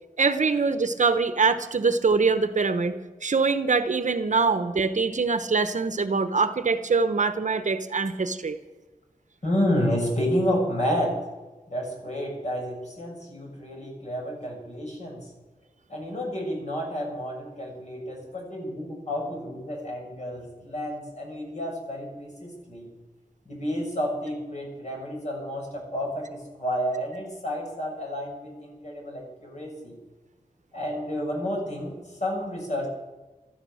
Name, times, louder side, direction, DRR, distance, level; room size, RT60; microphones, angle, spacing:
voice 1, 0.2-2.9 3.2-8.6, right 4 dB, 55° right, 10 dB, 1.1 m, -23 dB
voice 2, 9.4-11.2 11.7-15.2 15.9-22.9 23.4-30.0 30.7-32.9, equal, 50° left, -1 dB, 6.7 m, -30 dB
15.5 x 14.0 x 6.5 m, 1.2 s
wide cardioid pair, 110°, 15 cm